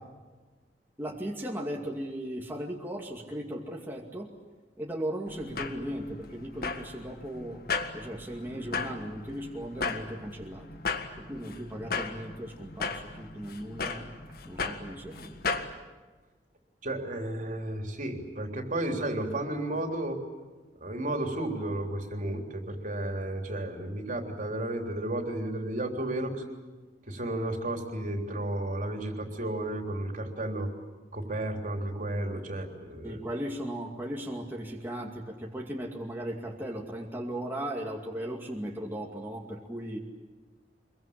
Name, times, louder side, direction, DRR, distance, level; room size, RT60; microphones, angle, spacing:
voice 1, 1.0-4.3 4.8-7.6 7.9-10.7 11.1-14.1 14.5-15.4 33.0-40.0, right 1 dB, 10° right, -1 dB, 2.4 m, -37 dB
sound 1, 5.3-15.7, left 4 dB, 60° left, 1.7 m, -36 dB
voice 2, 16.8-20.2 20.8-26.4 27.1-30.7 31.1-33.2, right 1 dB, 50° right, 3 dB, 3.6 m, -33 dB
26.0 x 22.5 x 8.7 m, 1.3 s
head